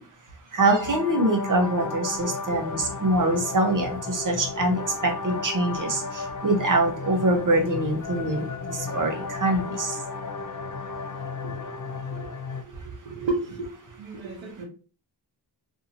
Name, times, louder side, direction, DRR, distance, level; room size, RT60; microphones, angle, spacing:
voice 1, 0.5-10.0, right 1 dB, 45° right, 3 dB, 0.9 m, -24 dB
sound 1, 0.7-12.6, left 4 dB, 45° left, 0.5 m, -34 dB
voice 2, 11.4-11.8 12.1-12.3 12.5-13.7 13.9-14.6, right 3 dB, 85° right, 1 dB, 0.9 m, -33 dB
2.7 x 2.7 x 2.5 m, 0.37 s
cardioid pair, 55°, 44 cm